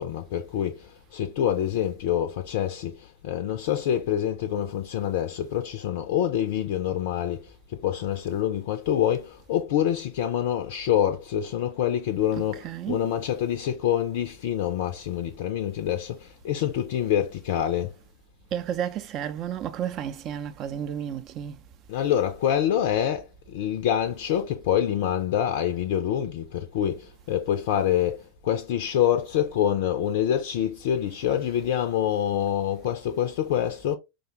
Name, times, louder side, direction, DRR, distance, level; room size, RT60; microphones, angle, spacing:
voice 1, 0.0-17.9 21.9-34.0, left 10 dB, 50° left, 0.5 m, -26 dB
voice 2, 12.3-13.0 18.5-21.6, right 9 dB, 35° right, 0.5 m, -32 dB
4.8 x 2.2 x 3.0 m
figure-of-eight pair, 90°, 0 cm